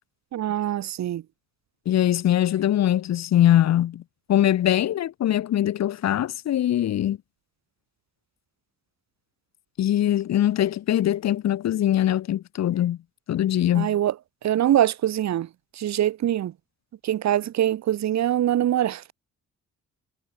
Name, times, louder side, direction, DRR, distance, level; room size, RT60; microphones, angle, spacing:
voice 1, 0.3-1.2 13.7-14.1 14.4-15.5 15.8-16.5 17.0-19.0, right 12 dB, 65° right, 1.3 m, -23 dB
voice 2, 1.9-4.0 4.3-7.2 9.8-13.0 13.3-14.0, left 12 dB, 60° left, 1.0 m, -22 dB
cardioid pair, 90°, 30 cm